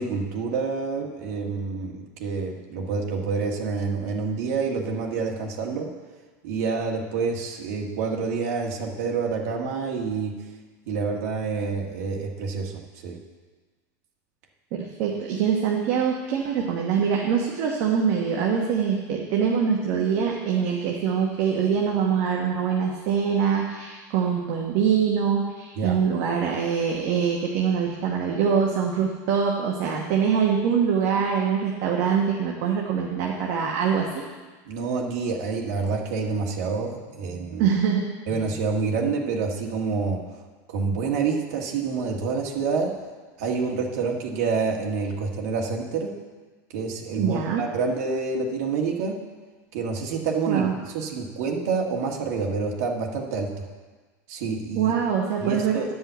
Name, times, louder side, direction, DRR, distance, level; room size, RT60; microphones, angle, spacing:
voice 1, 0.0-5.9 6.4-10.3 10.9-13.2 25.8-26.0 34.6-37.6 38.3-40.2 40.7-42.9 43.4-46.1 46.7-49.2 49.7-53.5 54.3-54.9 55.4-55.9, right 4 dB, 65° right, 0 dB, 1.6 m, -27 dB
voice 2, 14.7-34.3 37.6-38.4 47.2-47.7 50.5-50.7 54.7-55.9, right 7 dB, 45° right, -1 dB, 1.1 m, -24 dB
10.0 x 5.4 x 8.1 m, 1.3 s
supercardioid pair, 175°, 9 cm